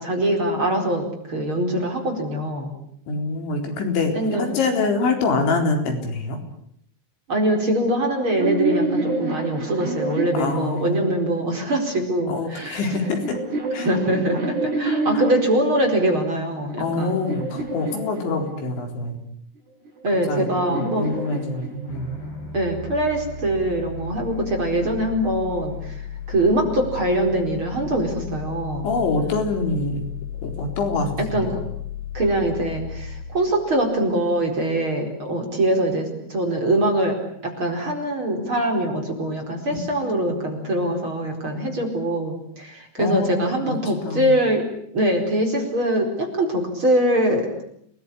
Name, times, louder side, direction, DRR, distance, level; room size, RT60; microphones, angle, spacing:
voice 1, 0.0-2.7 4.1-4.5 7.3-12.8 13.8-17.2 20.0-21.1 22.5-26.0 26.3-28.9 31.2-31.6 32.1-37.1 37.4-44.7 44.9-47.5, right 1 dB, 30° right, 3 dB, 4.9 m, -23 dB
voice 2, 3.1-6.4 10.3-11.4 12.3-13.4 13.7-13.9 14.9-15.2 16.8-19.2 20.3-22.1 28.8-30.0 30.4-31.5 40.0-40.3 43.0-43.8 44.0-44.4, left 3 dB, 75° left, 4 dB, 6.5 m, -25 dB
sound 1, 8.0-11.4 12.3-15.7 16.4-18.8 19.9-22.3, right 3 dB, 65° right, 6.9 m, -29 dB
sound 2, 21.9-34.6, left 7 dB, 60° left, 9.2 m, -35 dB
29.5 x 20.0 x 10.0 m, 0.70 s
omnidirectional pair, 5.3 m